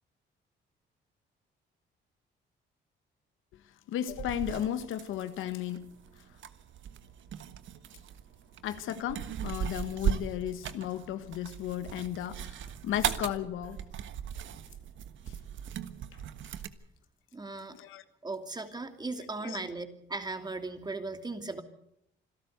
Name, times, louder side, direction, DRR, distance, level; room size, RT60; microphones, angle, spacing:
voice 1, 3.9-5.9 8.6-13.8 17.7-18.0 19.4-19.6, left 11 dB, 85° left, 1.4 m, -34 dB
sound 1, 4.1-16.7, right 9 dB, 75° right, 1.4 m, -38 dB
voice 2, 17.3-17.8 18.2-21.6, right 3 dB, 20° right, 2.8 m, -37 dB
26.5 x 12.5 x 8.1 m
cardioid pair, 90°, 20 cm